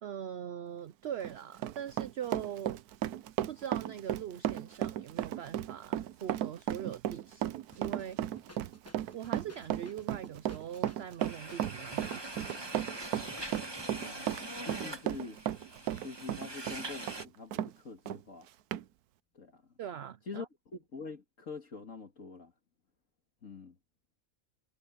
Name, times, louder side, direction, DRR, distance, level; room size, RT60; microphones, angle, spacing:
voice 1, 0.0-2.8 3.5-7.5 7.8-8.2 9.1-12.7 19.8-20.5, right 9 dB, 60° right, 0.6 m, -42 dB
Run, 1.1-17.7 18.1-18.2 18.7-18.8, right 12 dB, 80° right, 1.2 m, -35 dB
sound 1, 7.7-14.0, left 1 dB, 10° left, 1.3 m, -55 dB
sound 2, 11.2-17.2, right 2 dB, 15° right, 1.7 m, -43 dB
voice 2, 13.9-15.4 16.0-18.5 19.3-19.6 20.3-22.5 23.4-23.8, left 4 dB, 55° left, 2.4 m, -45 dB
omnidirectional pair, 1.6 m